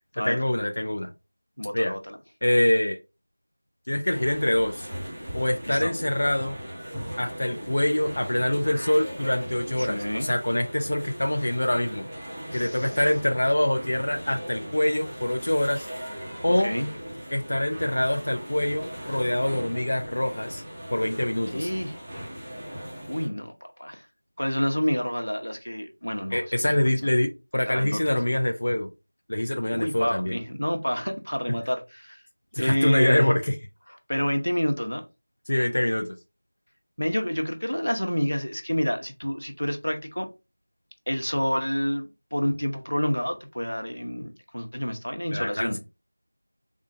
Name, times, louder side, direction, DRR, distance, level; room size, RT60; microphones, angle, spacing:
voice 1, 0.1-1.1 1.7-1.9 2.4-3.0 3.9-4.9 5.3-6.6 7.2-12.1 12.5-15.9 16.4-16.7 17.3-20.6 20.9-21.7 26.3-28.9 29.3-30.4 32.5-33.6 35.5-36.1 45.3-45.8, left 1 dB, 40° left, 0.4 m, -25 dB
voice 2, 1.6-2.2 5.7-5.9 9.8-10.3 12.5-12.9 16.6-16.9 21.5-22.0 23.1-23.5 23.8-24.0 24.4-26.9 27.7-28.0 29.7-32.2 32.6-33.3 34.1-35.0 37.0-40.3 41.1-45.8, equal, 85° left, 0.9 m, -28 dB
sound 1, 4.0-23.3, equal, 10° right, 0.6 m, -38 dB
3.6 x 2.4 x 2.6 m
figure-of-eight pair, 175°, 0 cm